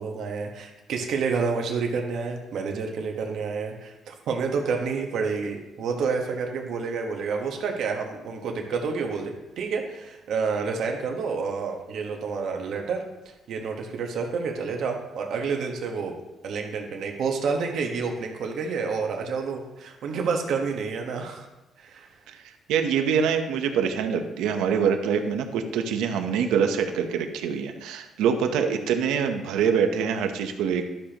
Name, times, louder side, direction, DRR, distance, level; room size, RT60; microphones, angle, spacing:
voice 1, 0.0-13.0 13.5-16.1 16.4-21.5 21.8-22.1, right 5 dB, 65° right, 2 dB, 1.4 m, -29 dB
voice 2, 22.7-30.8, right 7 dB, 90° right, 6 dB, 0.9 m, -25 dB
12.0 x 6.7 x 3.0 m, 1.0 s
cardioid pair, 115°, 0 cm